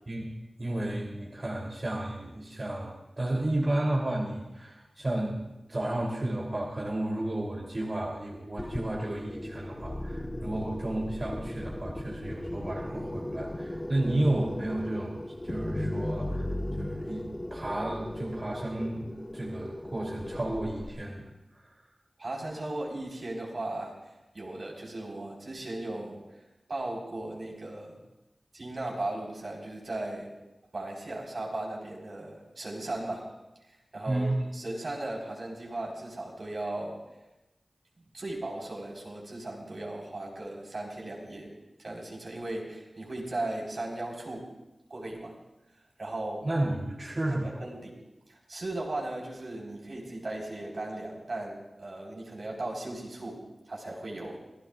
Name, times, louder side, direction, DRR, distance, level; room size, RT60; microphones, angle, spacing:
voice 1, 0.6-16.4 16.8-21.3 21.5-21.8 34.0-34.4 46.4-47.6, right 1 dB, 45° right, -3 dB, 3.2 m, -32 dB
Scary Monster Approaches, 8.6-20.9, left 1 dB, 20° left, 1.3 m, -37 dB
voice 2, 22.2-26.2 26.7-28.0 28.5-30.3 30.7-33.3 33.9-34.3 34.5-37.0 38.1-41.5 41.8-44.5 44.9-45.4 46.0-46.5 47.4-48.0 48.3-54.4, right 2 dB, 65° right, -2 dB, 4.6 m, -37 dB
27.0 x 16.0 x 2.5 m, 0.97 s
wide cardioid pair, 55°, 0 cm